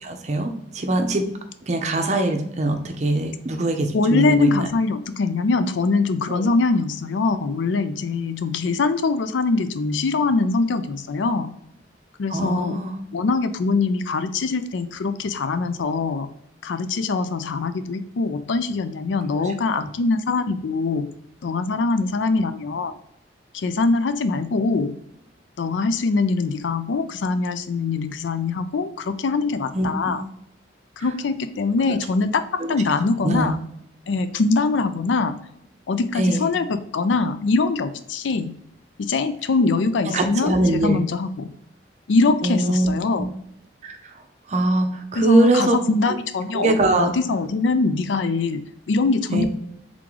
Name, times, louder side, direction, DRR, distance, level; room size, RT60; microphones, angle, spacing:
voice 1, 0.0-1.2 1.7-4.7 6.3-6.4 12.3-12.9 19.7-19.8 29.7-30.1 32.6-32.8 33.2-33.5 36.2-36.5 40.1-41.0 42.4-42.9 43.8-44.0 44.5-45.8 46.5-47.1 49.3-49.5, right 2 dB, 35° right, 5 dB, 0.6 m, -22 dB
voice 2, 3.9-11.5 12.2-12.8 13.1-16.3 16.6-21.2 21.4-22.9 23.5-25.0 25.6-30.2 31.0-33.6 34.1-35.4 35.9-38.5 39.0-41.5 42.1-43.3 45.2-49.5, left 3 dB, 75° left, 11 dB, 0.4 m, -23 dB
3.7 x 3.6 x 3.0 m, 0.74 s
head